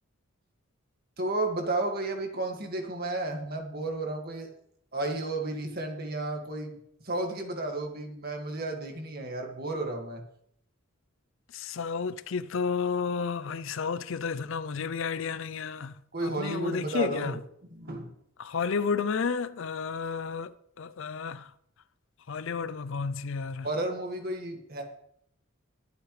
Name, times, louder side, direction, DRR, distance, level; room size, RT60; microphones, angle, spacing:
voice 1, 1.2-4.5 4.9-6.7 7.0-10.2 16.1-17.4 17.7-18.1 23.6-24.8, right 2 dB, 45° right, 2.0 m, -32 dB
voice 2, 11.5-15.9 16.2-17.3 18.4-21.5 22.3-23.7, left 5 dB, 60° left, 0.5 m, -32 dB
21.5 x 7.9 x 3.3 m
head